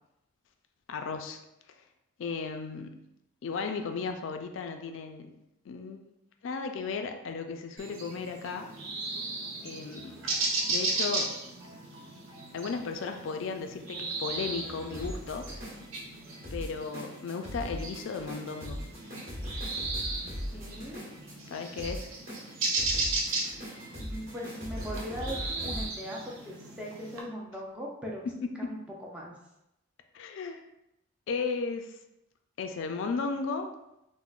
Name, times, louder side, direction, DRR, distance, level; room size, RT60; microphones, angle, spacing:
voice 1, 0.9-1.4 2.2-3.1 3.4-5.4 5.7-6.0 6.4-8.7 9.6-10.2 10.7-11.3 12.5-15.5 16.5-18.8 21.5-22.1 28.2-28.8 30.1-30.6 31.3-32.0 32.6-33.7, left 4 dB, 70° left, 6 dB, 0.3 m, -35 dB
sound 1, 7.8-27.2, right 3 dB, 80° right, 0.5 m, -36 dB
sound 2, 10.0-25.9, equal, 45° right, 1.3 m, -41 dB
voice 2, 20.5-21.0 24.0-25.4 25.6-28.2 28.6-29.4, equal, 5° right, -4 dB, 0.5 m, -39 dB
3.6 x 2.0 x 2.3 m, 0.86 s
head